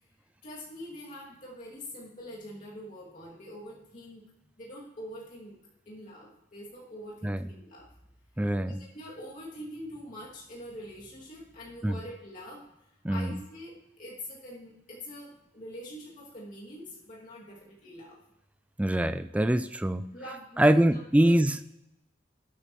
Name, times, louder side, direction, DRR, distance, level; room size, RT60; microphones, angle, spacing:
voice 1, 0.4-4.3 4.6-5.6 5.9-7.9 8.6-12.7 13.1-18.2 20.1-21.4, equal, 45° left, -6 dB, 2.6 m, -44 dB
voice 2, 8.4-8.8 11.8-12.0 13.0-13.3 18.8-20.1 20.6-21.6, right 1 dB, 10° right, 11 dB, 0.4 m, -24 dB
19.0 x 8.3 x 3.1 m, 0.89 s
head